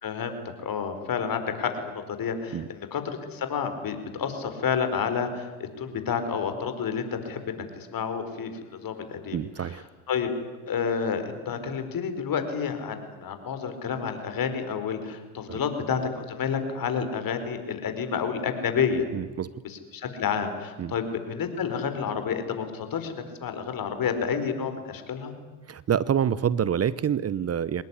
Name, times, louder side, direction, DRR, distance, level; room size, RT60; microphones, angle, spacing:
voice 1, 0.0-3.0 3.3-9.8 10.1-10.3 10.7-19.1 19.6-25.3, left 6 dB, 50° left, 8 dB, 4.9 m, -30 dB
voice 2, 9.3-9.8 15.5-15.6 19.1-19.5 20.8-20.9 25.7-27.8, right 8 dB, 35° right, 19 dB, 0.9 m, -27 dB
25.0 x 19.5 x 9.9 m, 1.2 s
supercardioid pair, 75°, 45 cm